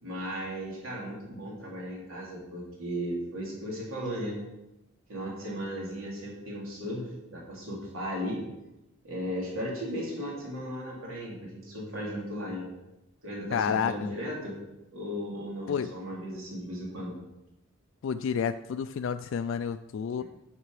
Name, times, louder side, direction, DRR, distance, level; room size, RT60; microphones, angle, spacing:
voice 1, 0.0-4.4 5.1-8.4 9.0-12.7 13.2-14.6 14.9-17.1 20.2-20.3, equal, 80° right, -4 dB, 3.2 m, -36 dB
voice 2, 13.5-14.1 15.7-15.9 18.0-20.2, left 7 dB, 65° left, 9 dB, 0.3 m, -30 dB
10.0 x 6.8 x 4.8 m, 0.95 s
head